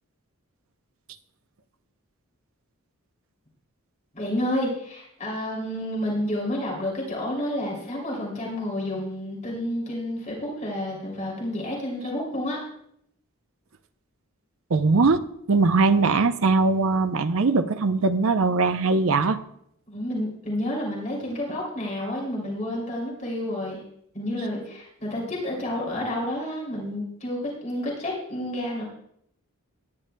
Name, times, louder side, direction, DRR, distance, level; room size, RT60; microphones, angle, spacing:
voice 1, 4.1-12.6 19.9-23.8 24.1-28.8, left 1 dB, 35° left, -3 dB, 2.8 m, -30 dB
voice 2, 14.7-19.4, right 3 dB, 70° right, 10 dB, 0.6 m, -21 dB
18.0 x 10.0 x 2.2 m, 0.72 s
head